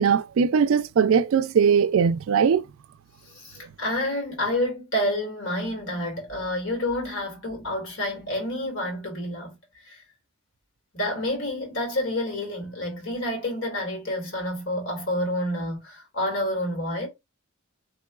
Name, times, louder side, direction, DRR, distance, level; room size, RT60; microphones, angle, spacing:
voice 1, 0.0-2.6, right 6 dB, 70° right, 0.3 m, -20 dB
voice 2, 3.2-9.5 9.8-10.0 10.9-17.1, left 1 dB, 65° left, 1.9 m, -29 dB
3.8 x 3.0 x 2.3 m
head